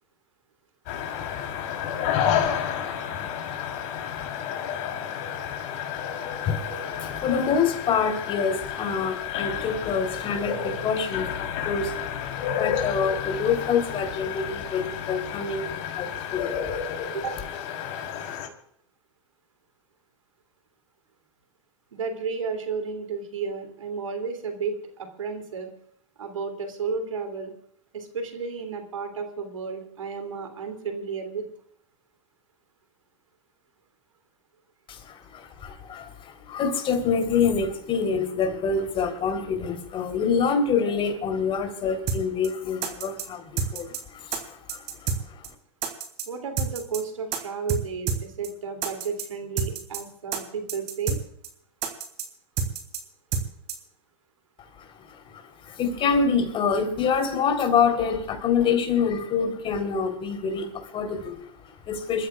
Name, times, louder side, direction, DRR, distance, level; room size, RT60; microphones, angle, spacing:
sound 1, 0.9-18.5, left 9 dB, 50° left, 3.7 m, -31 dB
voice 1, 6.1-17.2 34.9-45.5 54.8-62.3, left 6 dB, 35° left, 6 dB, 3.7 m, -27 dB
voice 2, 21.9-25.7 26.2-27.5 27.9-31.5 46.3-51.2, right 5 dB, 90° right, 5 dB, 2.9 m, -32 dB
sound 2, 42.1-42.2 42.4-42.5 42.8-43.2 43.6-44.0 44.3-44.4 44.7-45.2 45.4-45.5 45.8-46.2 46.6-47.0 47.3-47.4 47.7-47.8 48.1-48.2 48.4-48.5 48.8-49.2 49.6-50.0 50.3-50.4 50.7-51.2 51.4-51.5 51.8-52.2 52.6-53.0 53.3-53.4 53.7-53.8, right 6 dB, 40° right, 3.3 m, -28 dB
28.0 x 14.0 x 2.4 m, 0.70 s
hypercardioid pair, 105°, 16 cm